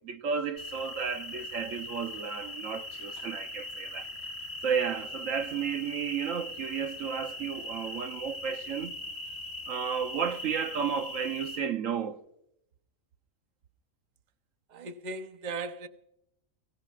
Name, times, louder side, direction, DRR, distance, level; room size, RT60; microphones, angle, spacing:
voice 1, 0.0-4.1 4.6-9.0 9.7-12.2, right 7 dB, 70° right, 1.2 m, -33 dB
sound 1, 0.6-11.6, left 1 dB, 65° left, 1.5 m, -40 dB
voice 2, 14.7-15.9, right 3 dB, 35° right, 0.9 m, -37 dB
23.5 x 17.5 x 2.5 m
omnidirectional pair, 1.5 m